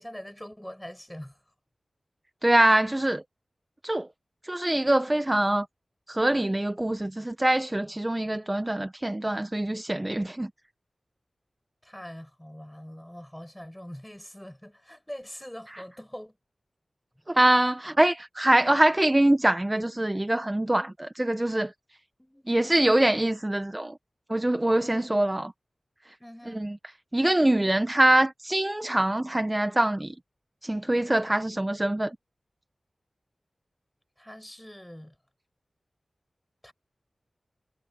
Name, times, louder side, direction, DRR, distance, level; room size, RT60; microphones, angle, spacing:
voice 1, 0.0-1.4 11.8-16.4 22.2-22.5 24.8-25.1 26.2-26.7 34.2-35.2 36.6-36.7, equal, 5° left, 6.9 m, -43 dB
voice 2, 2.4-3.2 3.8-4.1 4.4-5.7 6.1-10.5 17.3-21.7 22.5-23.9 24.3-25.5 26.5-26.8 27.1-30.1 30.6-32.1, right 1 dB, 20° right, 0.9 m, -24 dB
wide cardioid pair, 85°, 0 cm